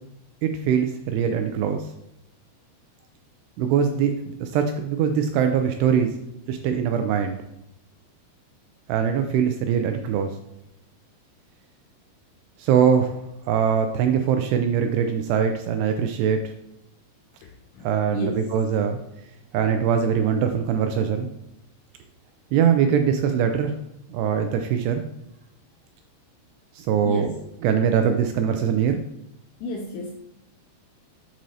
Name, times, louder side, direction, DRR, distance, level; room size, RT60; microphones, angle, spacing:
voice 1, 0.4-1.9 3.6-4.1 4.4-6.1 6.5-7.4 8.9-10.3 12.6-13.2 13.5-16.5 17.8-19.0 19.5-21.3 22.5-23.7 24.1-25.0 26.8-27.3 27.6-29.0, right 7 dB, 85° right, 6 dB, 2.4 m, -22 dB
voice 2, 18.1-18.5 27.0-27.3 29.6-30.2, left 2 dB, 80° left, 2 dB, 2.6 m, -31 dB
8.3 x 6.2 x 2.7 m, 0.84 s
omnidirectional pair, 5.2 m